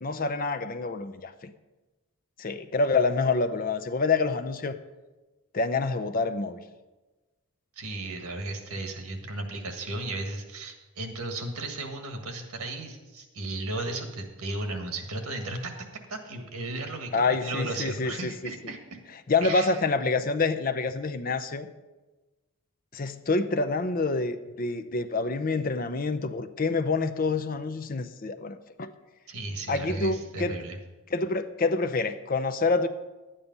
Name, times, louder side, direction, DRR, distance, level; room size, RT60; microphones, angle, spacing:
voice 1, 0.0-1.5 2.4-4.8 5.5-6.6 17.1-18.5 19.3-21.7 22.9-28.9 29.7-30.6 31.1-32.9, left 3 dB, 40° left, 9 dB, 0.6 m, -27 dB
voice 2, 7.8-15.7 16.1-19.0 19.4-20.2 29.3-30.8, right 2 dB, 85° right, 5 dB, 1.7 m, -35 dB
11.0 x 8.8 x 5.4 m, 1.2 s
head